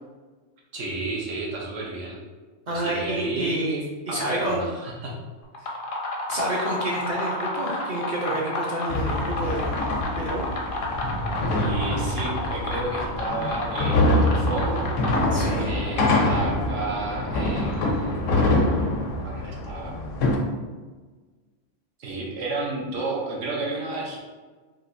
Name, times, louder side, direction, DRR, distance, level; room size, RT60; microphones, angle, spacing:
voice 1, 0.7-2.2 2.7-5.1 11.5-14.9 15.6-18.5 19.2-20.0 22.0-24.2, right 2 dB, 80° right, -3 dB, 1.1 m, -32 dB
voice 2, 2.7-3.8 4.1-4.6 6.3-9.8 10.2-10.5 15.3-15.7, right 1 dB, 50° right, -4 dB, 0.6 m, -29 dB
sound 1, 5.4-15.8, left 2 dB, 60° left, 0.6 m, -31 dB
sound 2, 8.9-20.4, left 1 dB, 85° left, 0.9 m, -25 dB
3.8 x 2.7 x 2.5 m, 1.3 s
omnidirectional pair, 1.3 m